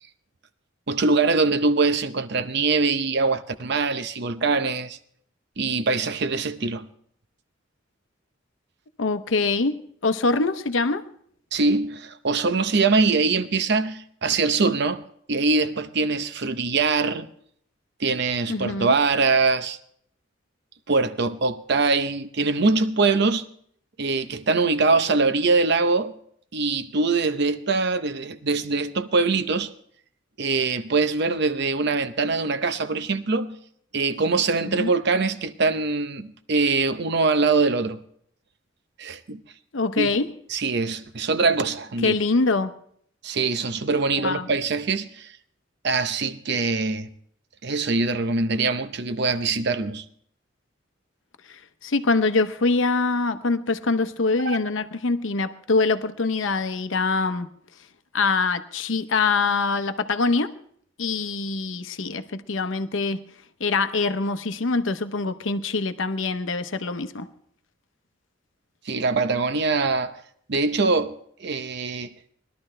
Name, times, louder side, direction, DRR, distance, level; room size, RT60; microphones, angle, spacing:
voice 1, 0.9-5.0 5.6-6.9 11.5-17.3 18.0-19.8 20.9-23.5 24.0-26.1 26.5-29.7 30.4-33.6 33.9-38.0 39.0-39.4 40.0-40.1 40.5-42.1 43.2-45.3 45.8-47.1 47.6-50.0 54.4-54.6 68.9-70.2 70.5-72.1, right 4 dB, 60° right, 0.7 m, -23 dB
voice 2, 9.0-11.1 18.5-19.0 34.8-34.9 39.7-40.3 42.0-42.7 44.2-44.5 51.5-57.5 58.1-60.5 61.0-63.3 63.6-67.3, left 3 dB, 75° left, 0.8 m, -24 dB
20.5 x 12.0 x 3.3 m
head